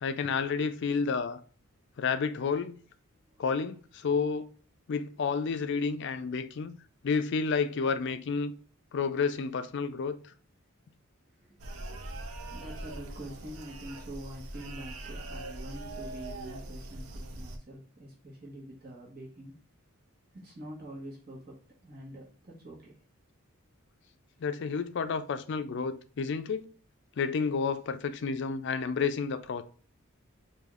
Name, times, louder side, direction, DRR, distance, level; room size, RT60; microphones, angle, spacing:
voice 1, 0.0-1.4 2.0-2.8 3.4-4.4 4.9-6.8 7.0-8.6 8.9-10.2 24.4-26.7 27.2-29.6, left 5 dB, 55° left, 0.4 m, -30 dB
voice 2, 11.3-11.6 12.5-19.6 20.3-23.0, right 1 dB, 45° right, 1.3 m, -46 dB
sound 1, 11.6-17.6, right 2 dB, 80° right, 0.6 m, -41 dB
5.0 x 2.7 x 2.4 m
head